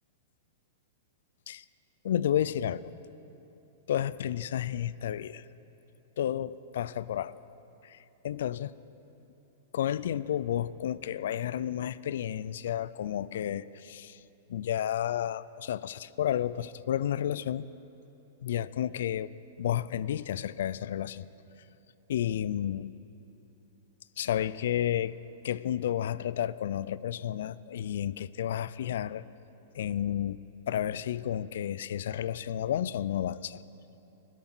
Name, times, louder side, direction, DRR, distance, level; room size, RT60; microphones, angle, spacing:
voice 1, 2.0-2.9 3.9-5.4 6.2-7.4 7.8-8.0 8.2-8.7 9.7-14.2 14.5-17.7 18.4-19.3 19.6-21.2 22.1-22.9 24.2-25.1 25.4-29.2 29.7-33.6, left 10 dB, 70° left, 18 dB, 0.4 m, -31 dB
16.5 x 12.0 x 6.1 m, 3.0 s
hypercardioid pair, 120°, 0 cm